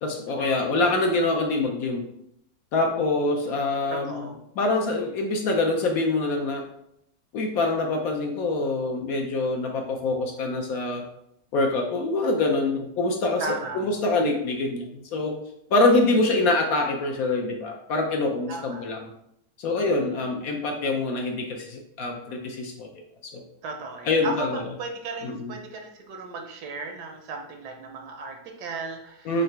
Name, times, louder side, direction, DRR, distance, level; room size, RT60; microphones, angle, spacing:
voice 1, 0.0-2.0 2.7-4.2 4.6-6.6 7.3-11.0 11.5-15.4 15.7-19.0 19.6-22.9 23.3-23.4 24.1-24.6 25.2-25.5 29.3-29.4, left 2 dB, 65° left, 2 dB, 1.0 m, -25 dB
voice 2, 3.9-4.4 13.4-14.0 18.5-18.9 19.9-20.2 23.6-29.4, right 3 dB, 75° right, 3 dB, 1.3 m, -36 dB
3.9 x 3.1 x 4.4 m, 0.77 s
omnidirectional pair, 1.8 m